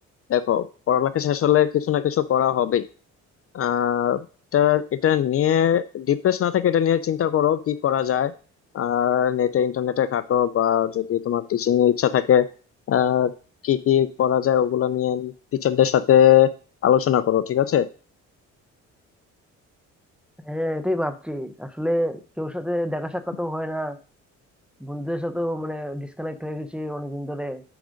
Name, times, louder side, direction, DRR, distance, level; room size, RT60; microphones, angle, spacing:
voice 1, 0.3-2.8 3.5-4.2 4.5-8.3 8.7-12.5 12.9-13.3 13.6-15.3 15.6-16.5 16.8-17.9, left 10 dB, 50° left, 14 dB, 0.5 m, -20 dB
voice 2, 20.4-24.0 24.8-27.6, equal, 5° right, 9 dB, 0.7 m, -28 dB
6.0 x 5.0 x 5.1 m, 0.40 s
cardioid pair, 90°, 30 cm